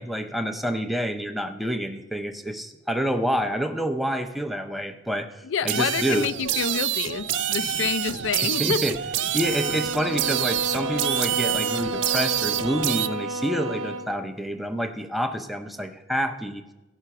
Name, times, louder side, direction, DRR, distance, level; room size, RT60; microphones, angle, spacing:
voice 1, 0.0-6.3 8.4-9.0 9.3-16.6, equal, ahead, 7 dB, 0.6 m, -28 dB
voice 2, 5.4-8.8, left 6 dB, 80° left, 15 dB, 0.4 m, -28 dB
sound 1, 5.7-13.1, right 11 dB, 65° right, 0.4 m, -27 dB
sound 2, 9.4-14.1, right 1 dB, 85° right, 0.7 m, -31 dB
15.0 x 5.7 x 5.8 m, 1.1 s
head